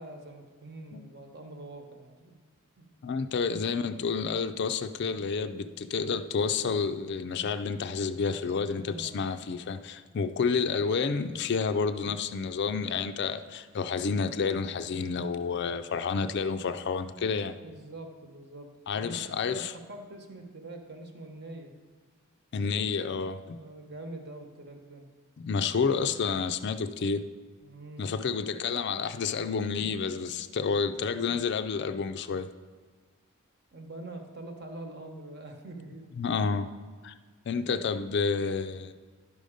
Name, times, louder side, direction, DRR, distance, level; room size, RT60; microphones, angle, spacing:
voice 1, 0.0-2.4 2.8-2.9 8.9-9.2 17.6-21.7 23.5-25.1 27.6-28.1 33.7-36.1, right 2 dB, 50° right, 3 dB, 1.1 m, -44 dB
voice 2, 3.0-17.6 18.9-19.7 22.5-23.6 25.4-27.2 28.0-32.5 36.2-36.7 37.0-37.2 37.5-38.9, left 5 dB, 55° left, 10 dB, 0.4 m, -30 dB
11.0 x 5.3 x 5.0 m, 1.5 s
head